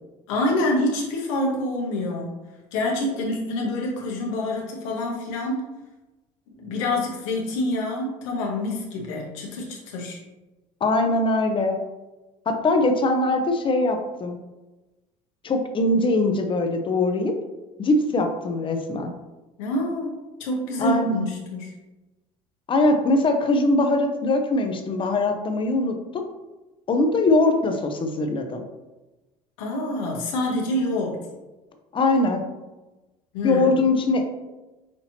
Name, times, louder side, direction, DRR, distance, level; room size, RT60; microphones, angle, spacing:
voice 1, 0.3-2.4 2.7-5.7 6.6-10.2 19.6-20.1 20.4-21.7 29.6-31.2 33.3-33.6, left 1 dB, 90° left, -1 dB, 1.1 m, -26 dB
voice 2, 10.8-11.8 12.5-14.4 15.4-17.3 17.8-19.1 20.8-21.2 22.7-26.2 26.9-28.6 31.9-32.4 33.4-34.2, left 2 dB, 35° left, 5 dB, 0.7 m, -22 dB
5.9 x 2.8 x 2.8 m, 1.1 s
supercardioid pair, 90°, 16 cm